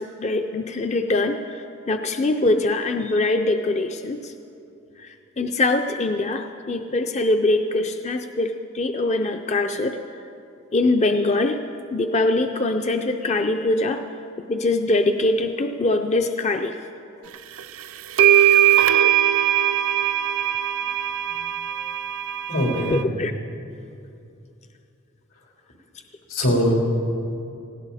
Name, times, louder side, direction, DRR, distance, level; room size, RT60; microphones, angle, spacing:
voice 1, 0.0-4.3 5.0-10.0 10.7-11.6 11.9-14.0 14.5-16.7 22.9-23.3, left 2 dB, 35° left, 6 dB, 0.5 m, -23 dB
sound 1, 17.6-17.7 18.2-23.0, right 10 dB, 75° right, 0.5 m, -20 dB
voice 2, 21.2-21.8 22.5-23.0 26.3-26.7, equal, 85° left, -2 dB, 3.7 m, -23 dB
19.0 x 16.5 x 4.2 m, 2.6 s
head